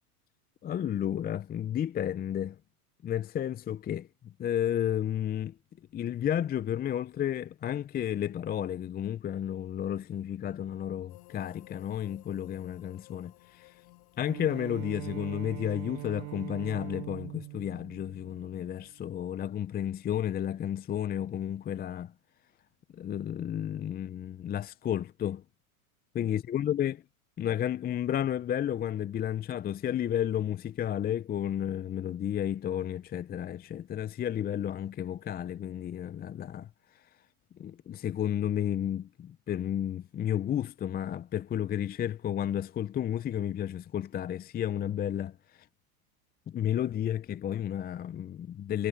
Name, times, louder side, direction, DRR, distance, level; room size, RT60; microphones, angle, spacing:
voice 1, 0.6-2.6 3.0-5.5 5.9-13.8 14.2-22.1 22.9-25.4 26.1-27.0 27.4-36.7 37.6-45.4 46.5-48.9, left 10 dB, 20° left, 0.6 m, -32 dB
sound 1, 11.1-18.8, left 29 dB, 60° left, 7.6 m, -59 dB
Bowed string instrument, 14.2-18.9, right 31 dB, 55° right, 7.4 m, -42 dB
hypercardioid pair, 100°, 44 cm